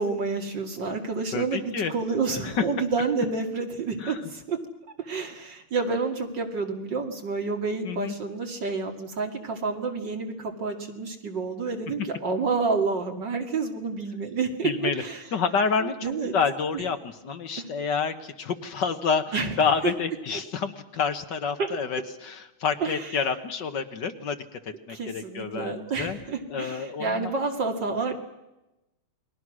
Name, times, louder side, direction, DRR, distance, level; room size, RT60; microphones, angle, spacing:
voice 1, 0.0-4.6 5.0-15.2 16.0-16.4 16.7-16.8 17.6-17.7 19.3-19.5 19.8-19.9 21.6-21.7 22.8-23.1 24.9-28.1, right 4 dB, 55° right, 3 dB, 3.1 m, -29 dB
voice 2, 1.3-1.9 2.4-2.6 4.0-4.2 7.8-8.2 14.6-15.0 15.3-26.2 26.5-27.3, left 5 dB, 60° left, 9 dB, 1.7 m, -28 dB
29.0 x 22.0 x 6.3 m, 0.96 s
omnidirectional pair, 2.3 m